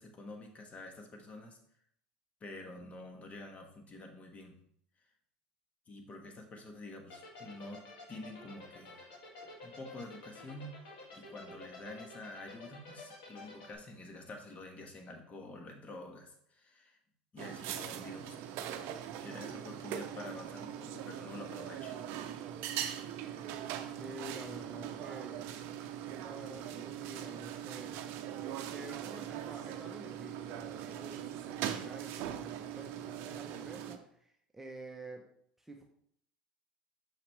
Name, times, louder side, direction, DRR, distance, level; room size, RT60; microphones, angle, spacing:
voice 1, 0.0-1.6 2.4-4.6 5.9-7.8 8.1-9.0 9.6-10.7 11.1-17.0 17.3-18.4 19.2-22.0, left 2 dB, 30° left, 4 dB, 1.4 m, -48 dB
sound 1, 7.1-13.7, left 3 dB, 70° left, 2.2 m, -49 dB
sound 2, 17.4-34.0, right 10 dB, 60° right, 0.6 m, -41 dB
voice 2, 23.8-25.5 26.1-28.0 28.7-35.2 35.6-35.8, right 1 dB, 5° right, 1 dB, 0.8 m, -49 dB
6.1 x 5.7 x 3.3 m, 0.67 s
hypercardioid pair, 80°, 5 cm